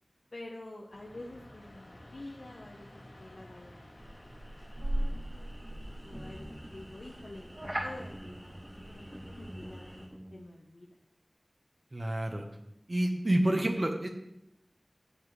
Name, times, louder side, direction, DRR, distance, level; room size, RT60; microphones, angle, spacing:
voice 1, 0.3-5.5 6.0-11.0, left 2 dB, 85° left, -2 dB, 1.0 m, -48 dB
sound 1, 0.9-6.0, left 1 dB, 65° left, 4.5 m, -53 dB
sound 2, 4.0-10.1, right 1 dB, 35° right, 2.3 m, -39 dB
sound 3, 4.8-10.4, equal, 5° right, 0.9 m, -48 dB
voice 2, 11.9-12.4 12.9-14.1, right 1 dB, 50° right, 2 dB, 1.1 m, -28 dB
14.0 x 8.1 x 3.3 m, 0.82 s
wide cardioid pair, 55°, 0 cm